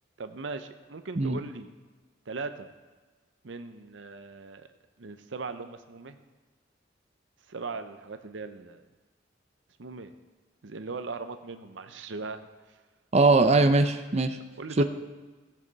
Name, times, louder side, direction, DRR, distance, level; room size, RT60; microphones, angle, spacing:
voice 1, 0.2-1.7 2.3-2.7 3.4-4.7 5.0-6.2 7.5-8.8 9.8-10.1 10.6-12.5 14.6-14.8, right 4 dB, 75° right, 9 dB, 0.7 m, -39 dB
voice 2, 13.1-14.4 14.8-14.9, right 3 dB, 35° right, 7 dB, 0.6 m, -21 dB
17.0 x 7.6 x 4.1 m, 1.3 s
head